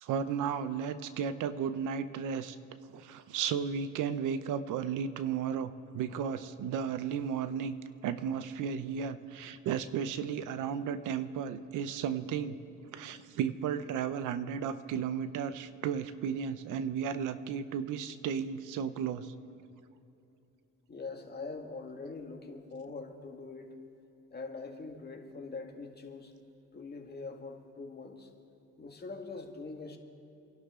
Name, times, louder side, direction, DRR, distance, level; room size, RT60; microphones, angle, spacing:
voice 1, 0.0-2.6 2.9-7.8 8.0-12.6 12.8-19.3, right 7 dB, 90° right, 12 dB, 0.9 m, -34 dB
voice 2, 20.9-23.7 24.3-26.3 26.7-28.3 28.8-30.0, left 3 dB, 30° left, 2 dB, 2.1 m, -43 dB
28.5 x 11.5 x 3.8 m, 2.9 s
cardioid pair, 90°, 30 cm